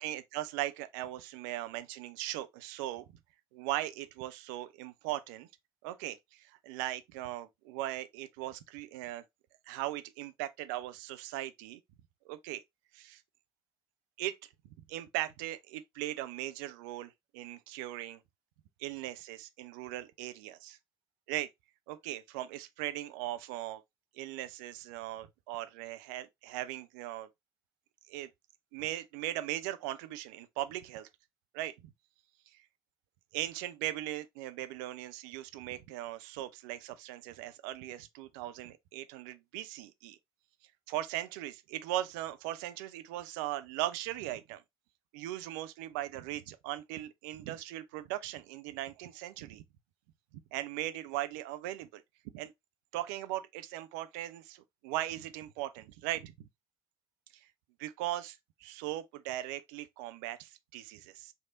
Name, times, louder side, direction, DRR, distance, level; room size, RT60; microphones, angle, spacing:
voice 1, 0.0-3.0 3.5-5.5 5.8-9.2 9.7-11.8 12.3-12.6 12.9-13.2 14.2-14.4 14.9-18.2 18.8-20.8 21.3-21.5 21.9-23.8 24.1-27.3 28.1-28.3 28.7-31.1 31.5-31.9 33.3-40.2 40.9-44.6 45.1-49.6 50.5-52.0 52.3-52.5 52.9-56.5 57.8-61.3, right 14 dB, 70° right, 0.5 m, -39 dB
3.3 x 2.8 x 3.7 m
hypercardioid pair, 55°, 11 cm